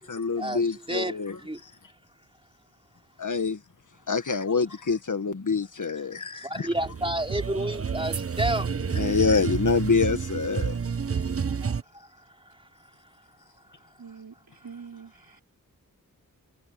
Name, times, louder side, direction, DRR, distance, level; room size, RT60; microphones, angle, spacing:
voice 1, 0.0-1.7 3.2-3.6 4.1-6.7 8.9-10.8, left 4 dB, 60° left, 1.6 m, -26 dB
voice 2, 0.9-1.6 6.3-8.7 11.6-12.1, right 1 dB, 15° right, 3.4 m, -30 dB
sound 1, 6.6-11.8, right 6 dB, 40° right, 0.7 m, -29 dB
voice 3, 14.0-15.4, right 6 dB, 80° right, 4.4 m, -45 dB
wide cardioid pair, 70°, 35 cm